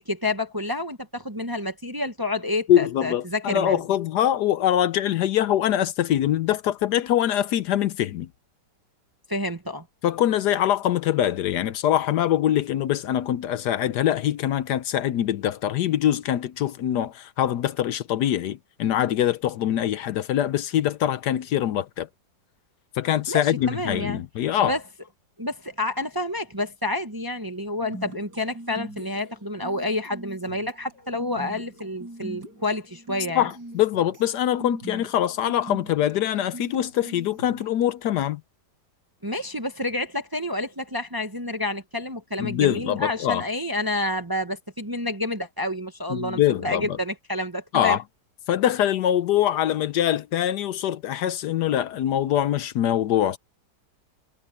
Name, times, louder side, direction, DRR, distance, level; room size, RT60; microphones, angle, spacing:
voice 1, 0.0-3.8 9.3-9.9 23.3-24.2 24.6-24.8 25.4-33.5 39.2-48.0, left 2 dB, 15° right, 0.9 m, -29 dB
voice 2, 2.7-8.3 10.0-22.1 23.0-24.8 33.3-38.4 42.4-43.4 46.1-47.0 47.7-48.0 48.5-53.4, left 11 dB, 70° left, 1.2 m, -23 dB
sound 1, 27.8-38.1, right 1 dB, 65° right, 8.1 m, -42 dB
omnidirectional pair, 1.9 m